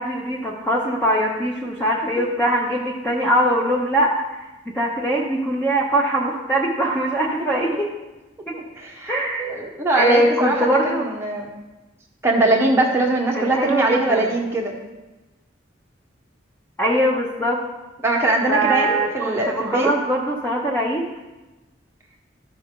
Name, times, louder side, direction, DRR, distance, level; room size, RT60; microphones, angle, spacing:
voice 1, 0.0-7.9 8.5-8.6 9.1-9.5 9.9-11.1 13.3-14.3 16.8-17.6 18.5-21.1, right 1 dB, 10° left, -3 dB, 0.7 m, -22 dB
voice 2, 8.5-11.5 12.2-14.7 18.0-19.9, right 2 dB, 15° right, -2 dB, 1.1 m, -21 dB
12.5 x 5.6 x 3.7 m, 1.1 s
head